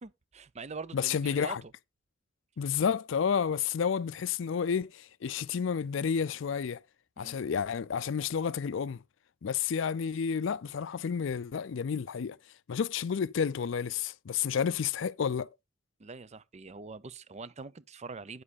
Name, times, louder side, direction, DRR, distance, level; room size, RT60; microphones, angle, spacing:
voice 1, 0.0-1.7 7.2-7.4 16.0-18.4, right 4 dB, 35° right, 0.6 m, -44 dB
voice 2, 0.9-1.6 2.6-6.8 7.2-9.0 9.4-12.4 12.7-15.5, left 7 dB, 70° left, 0.4 m, -30 dB
9.7 x 7.4 x 4.1 m
head